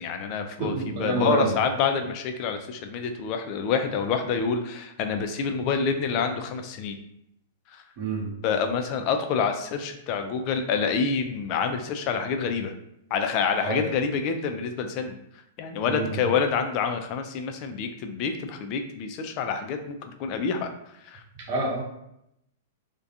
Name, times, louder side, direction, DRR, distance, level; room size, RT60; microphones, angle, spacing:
voice 1, 0.0-7.0 7.7-7.8 8.4-12.7 13.1-15.2 15.6-20.7 21.0-21.2, left 6 dB, 45° left, 6 dB, 0.3 m, -27 dB
voice 2, 0.6-1.5 8.0-8.3 13.6-13.8 15.9-16.2 21.5-21.9, right 2 dB, 50° right, -3 dB, 0.9 m, -27 dB
2.3 x 2.2 x 2.7 m, 0.79 s
hypercardioid pair, 125°, 0 cm